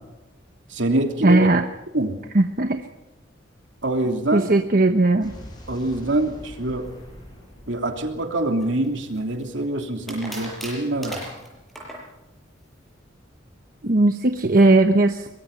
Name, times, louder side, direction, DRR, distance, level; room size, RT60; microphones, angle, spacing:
voice 1, 0.7-1.5 1.9-2.2 3.8-4.5 5.7-6.9 7.7-11.2, right 1 dB, 70° right, 4 dB, 3.1 m, -25 dB
voice 2, 1.2-1.6 2.3-2.8 4.3-5.3 13.8-15.3, right 2 dB, 45° right, 6 dB, 1.0 m, -17 dB
Explosion, 5.2-9.3, equal, 20° left, 5.9 m, -44 dB
sound 1, 8.6-9.4 10.1-12.1, right 1 dB, ahead, 7.0 m, -36 dB
23.5 x 21.5 x 5.5 m, 0.98 s
head